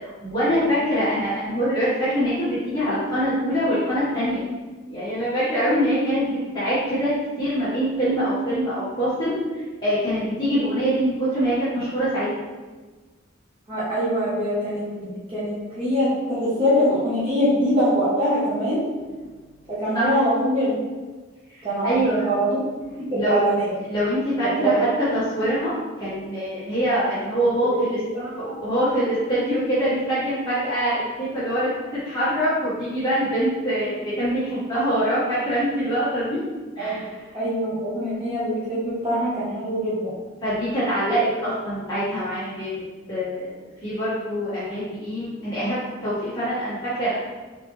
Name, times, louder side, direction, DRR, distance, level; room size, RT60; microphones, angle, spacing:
voice 1, 0.0-4.4 4.9-7.1 7.4-12.3 19.9-20.2 21.6-22.3 23.1-25.7 26.0-28.0 28.6-31.7 32.0-36.4 36.8-37.1 40.4-42.8 43.1-47.2, equal, 20° left, -12 dB, 1.4 m, -24 dB
voice 2, 13.7-18.8 19.7-20.8 21.6-22.6 23.1-23.7 24.4-24.9 27.6-27.8 28.1-28.5 36.8-37.0 37.3-40.1, equal, 25° right, -10 dB, 1.0 m, -23 dB
4.2 x 3.5 x 3.1 m, 1.3 s
head